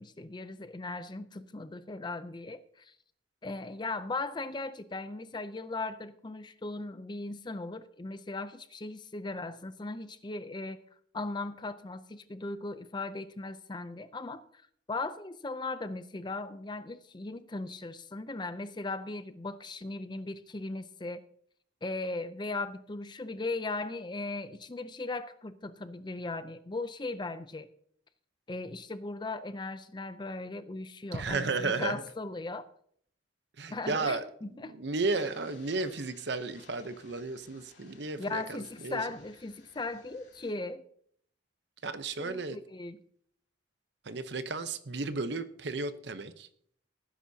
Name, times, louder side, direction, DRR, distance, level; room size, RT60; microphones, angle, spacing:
voice 1, 0.0-2.9 3.4-10.8 11.1-14.4 14.9-21.2 21.8-27.7 28.5-32.7 33.7-34.8 38.2-40.8 42.2-43.0, left 3 dB, 25° left, 13 dB, 0.5 m, -38 dB
voice 2, 31.1-32.0 33.6-39.0 41.8-42.6 44.0-46.5, right 3 dB, 60° right, 11 dB, 0.8 m, -34 dB
sound 1, 35.2-40.5, left 4 dB, 60° left, 3.2 m, -59 dB
18.0 x 10.0 x 2.8 m, 0.64 s
head